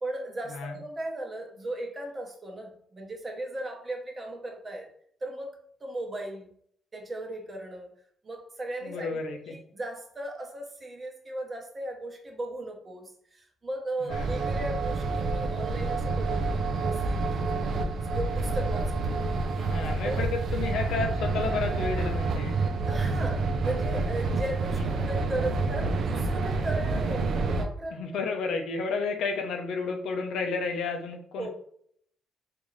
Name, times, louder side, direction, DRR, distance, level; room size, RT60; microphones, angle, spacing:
voice 1, 0.0-4.9 5.2-5.6 5.8-6.5 6.9-7.9 8.2-9.2 9.5-19.5 20.0-20.2 22.9-28.2 31.4-31.5, right 1 dB, 30° right, 2 dB, 0.8 m, -37 dB
voice 2, 8.8-9.5 14.0-14.3 19.6-22.6 24.8-24.9 27.9-31.5, left 4 dB, 80° left, 4 dB, 0.6 m, -32 dB
sound 1, 14.1-27.7, right 3 dB, 60° right, 0.5 m, -28 dB
3.8 x 2.5 x 3.1 m, 0.64 s
cardioid pair, 90°, 0 cm